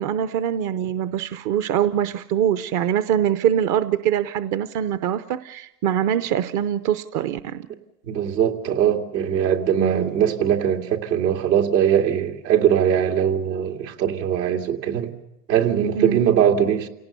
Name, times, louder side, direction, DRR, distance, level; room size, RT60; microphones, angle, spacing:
voice 1, 0.0-7.6 9.8-10.1 15.9-16.2, right 10 dB, 40° right, 0.7 m, -23 dB
voice 2, 8.0-15.1 15.5-16.9, right 9 dB, 80° right, 2.7 m, -21 dB
29.0 x 18.0 x 6.8 m
hypercardioid pair, 110°, 49 cm